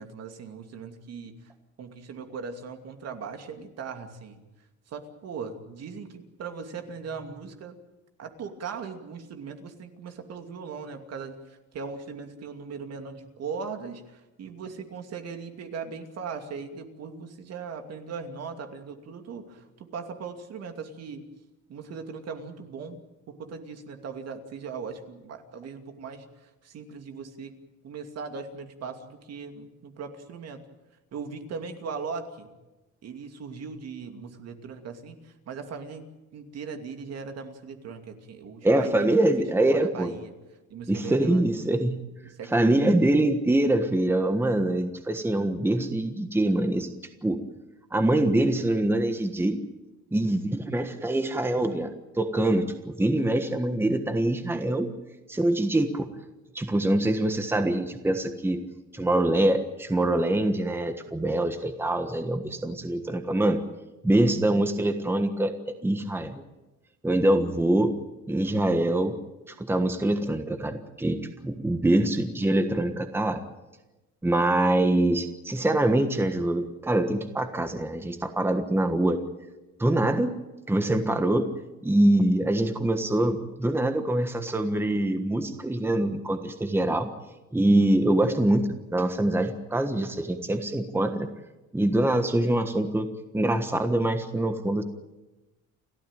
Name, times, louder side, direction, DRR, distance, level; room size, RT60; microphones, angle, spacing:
voice 1, 0.0-1.4 1.8-4.4 4.9-7.8 8.2-21.2 21.7-23.0 23.3-26.2 26.6-27.5 27.8-30.6 31.1-32.5 33.0-36.1 36.3-39.3 39.6-40.3 40.7-41.5 42.2-43.0, right 5 dB, 55° right, 6 dB, 2.7 m, -39 dB
voice 2, 38.6-40.1 40.9-42.0 42.5-46.9 47.2-47.4 47.9-49.6 50.1-54.9 55.3-56.1 56.5-58.6 58.9-63.6 64.0-66.4 67.0-68.0 68.3-69.1 69.6-73.4 74.2-79.2 79.8-80.3 80.7-81.5 81.8-87.1 87.5-91.3 91.7-94.8, right 1 dB, 10° right, 7 dB, 1.4 m, -24 dB
29.5 x 13.5 x 9.1 m, 1.1 s
cardioid pair, 125°, 30 cm